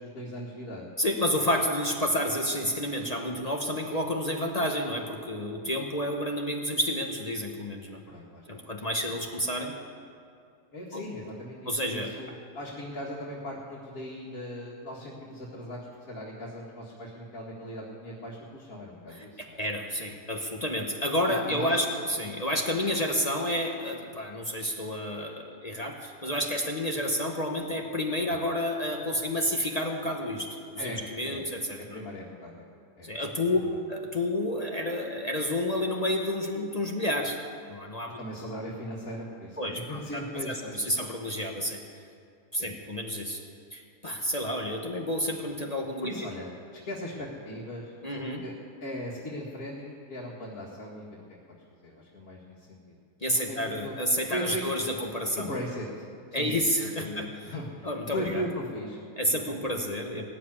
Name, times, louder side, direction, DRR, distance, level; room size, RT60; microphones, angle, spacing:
voice 1, 0.0-0.9 8.1-8.7 10.7-19.6 21.3-21.8 28.3-28.4 30.8-31.0 31.3-31.4 31.8-32.6 33.0-33.1 33.6-33.8 38.2-40.9 42.6-42.7 46.0-46.5 46.8-47.9 48.4-48.5 48.8-51.1 51.8-53.0 53.3-53.9 54.3-54.6 55.3-56.0 56.3-56.5 56.8-59.0 59.6-59.7, equal, 65° left, -5 dB, 2.4 m, -38 dB
voice 2, 1.0-8.0 8.5-9.7 10.9-11.0 11.7-12.1 19.1-32.0 33.0-33.6 33.9-37.4 37.7-38.2 39.6-41.8 42.5-43.4 43.7-46.3 48.0-48.4 53.2-55.5 56.3-57.3 57.8-58.4 59.2-60.3, left 1 dB, 30° left, 1 dB, 1.0 m, -30 dB
17.5 x 7.5 x 9.8 m, 2.4 s
omnidirectional pair, 1.6 m